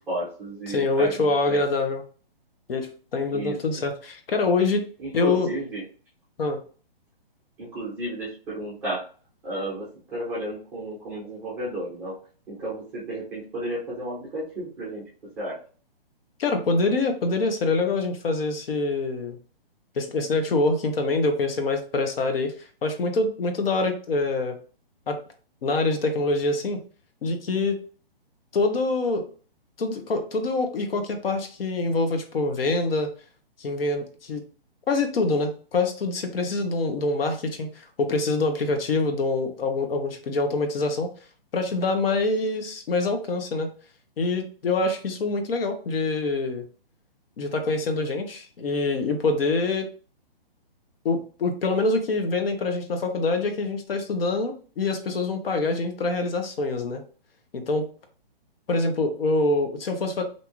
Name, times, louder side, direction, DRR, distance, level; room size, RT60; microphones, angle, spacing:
voice 1, 0.1-1.6 3.3-3.6 5.0-5.8 7.6-9.0 9.4-12.2 12.5-15.0 15.4-15.6, right 1 dB, 5° right, -8 dB, 0.5 m, -32 dB
voice 2, 0.7-2.0 2.7-4.9 5.1-5.5 6.4-6.6 16.4-19.4 20.0-22.5 22.8-24.6 25.1-25.2 25.6-26.8 27.2-27.8 28.5-29.3 29.8-33.1 33.6-34.4 34.9-41.1 41.5-43.7 44.2-46.7 47.4-49.9 51.0-57.0 57.5-57.8 58.7-60.2, left 3 dB, 70° left, 6 dB, 0.7 m, -25 dB
2.7 x 2.3 x 2.9 m, 0.40 s
hypercardioid pair, 155°, 30 cm